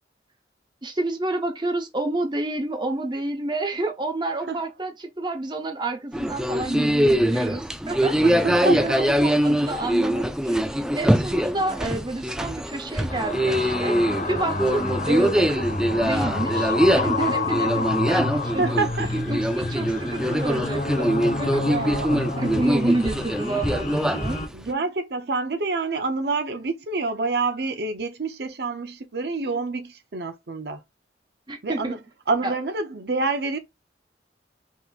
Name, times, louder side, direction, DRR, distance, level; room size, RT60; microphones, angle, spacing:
voice 1, 0.8-10.6 10.9-14.0 14.3-15.7 16.0-18.8 19.3-21.1 21.4-21.9 22.4-24.4 31.5-32.0 32.4-32.5, right 2 dB, 25° right, 0.9 m, -29 dB
sound 1, 6.1-24.7, equal, 5° right, 0.3 m, -23 dB
voice 2, 8.2-9.1 17.2-17.3 18.6-19.1 21.6-22.5 24.5-30.8 31.6-32.0 32.3-33.6, right 3 dB, 65° right, 0.6 m, -27 dB
sound 2, 13.1-24.5, left 3 dB, 40° left, 1.0 m, -29 dB
5.5 x 2.9 x 2.4 m
head